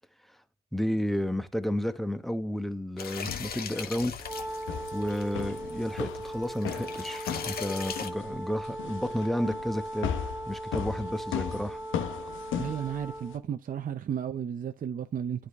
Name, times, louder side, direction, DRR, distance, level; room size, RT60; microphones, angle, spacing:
voice 1, 0.7-4.1 4.9-10.1 10.4-11.8, equal, ahead, 1.0 m, -31 dB
sound 1, 3.0-8.1, left 7 dB, 50° left, 1.2 m, -39 dB
sound 2, 3.1-13.4, left 8 dB, 80° left, 0.9 m, -38 dB
Wind instrument woodwind instrument, 4.2-13.4, right 1 dB, 15° right, 1.9 m, -39 dB
voice 2, 12.6-15.5, right 8 dB, 45° right, 0.6 m, -33 dB
9.8 x 4.9 x 3.5 m
cardioid pair, 90°, 20 cm